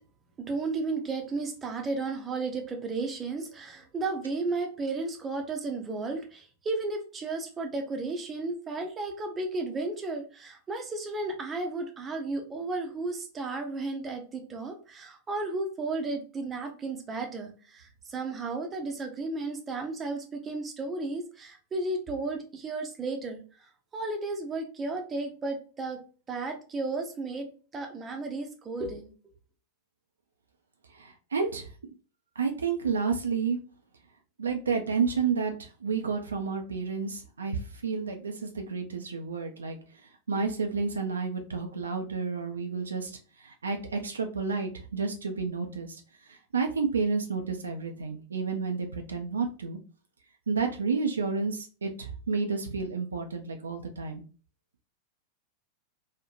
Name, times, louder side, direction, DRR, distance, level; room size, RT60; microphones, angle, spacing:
voice 1, 0.4-26.0 26.3-27.5 27.7-29.1, right 3 dB, 20° right, 3 dB, 0.6 m, -33 dB
voice 2, 30.9-31.7 32.4-33.6 34.4-49.8 50.5-54.2, right 5 dB, 70° right, 4 dB, 0.4 m, -31 dB
3.0 x 2.1 x 2.4 m, 0.37 s
figure-of-eight pair, 90°, 0 cm